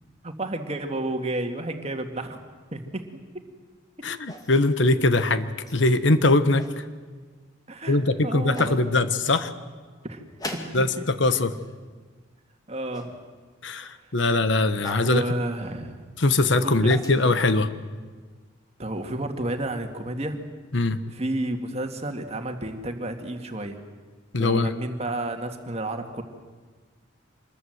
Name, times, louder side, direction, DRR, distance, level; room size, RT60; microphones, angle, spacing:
voice 1, 0.2-2.4 2.7-3.0 4.0-4.1 7.7-8.8 10.0-10.2 10.5-11.0 12.7-13.2 14.0-14.1 15.0-16.0 16.6-16.9 18.8-20.4 21.1-23.8 24.4-26.2, right 1 dB, 30° right, 5 dB, 2.0 m, -31 dB
voice 2, 4.0-6.8 7.9-9.5 10.7-11.5 13.6-15.2 16.2-17.7 20.7-21.0 24.3-24.7, left 2 dB, 65° left, 11 dB, 1.1 m, -22 dB
sound 1, 4.3-4.8 5.7-5.8 6.3-6.8 7.8-7.9 8.5-8.8 10.4-11.1 11.3-11.8 12.9-13.1 14.8-15.1 16.5-17.2, left 1 dB, 20° left, 2.2 m, -39 dB
26.5 x 21.0 x 8.0 m, 1.4 s
head